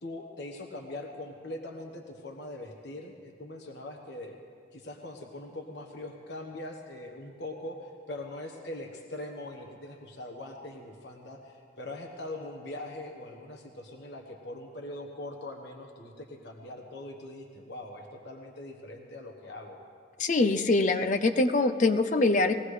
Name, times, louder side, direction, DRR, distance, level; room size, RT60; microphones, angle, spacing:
voice 1, 0.0-4.4 4.7-19.8, left 1 dB, 65° left, 2 dB, 1.2 m, -42 dB
voice 2, 20.2-22.5, left 2 dB, 40° left, 8 dB, 0.5 m, -24 dB
21.0 x 17.0 x 3.3 m, 2.3 s
head